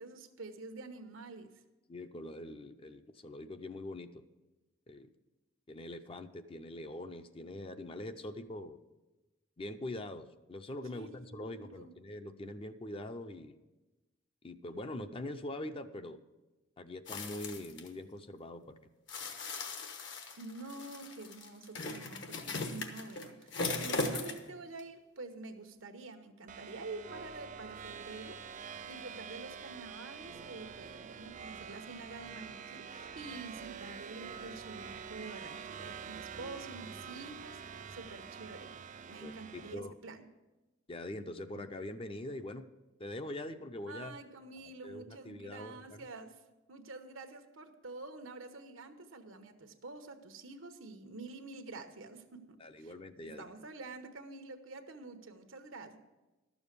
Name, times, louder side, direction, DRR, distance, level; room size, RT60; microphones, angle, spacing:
voice 1, 0.0-1.5 10.9-11.9 20.4-28.4 28.9-37.6 37.9-38.7 39.1-40.2 43.9-46.3 46.7-52.9 53.2-56.0, right 3 dB, 85° right, 7 dB, 1.0 m, -47 dB
voice 2, 1.9-4.2 4.9-5.1 5.7-8.8 9.6-13.6 14.4-16.2 16.8-18.8 39.2-39.9 40.9-42.6 43.0-44.2 44.8-46.0 52.6-53.4, left 1 dB, 25° left, 9 dB, 0.5 m, -43 dB
sound 1, 17.1-17.9 19.1-24.5 24.8-24.9, left 3 dB, 65° left, 1.1 m, -38 dB
sound 2, 26.5-39.8, right 6 dB, 40° right, 0.4 m, -46 dB
12.0 x 7.1 x 6.7 m, 1.1 s
head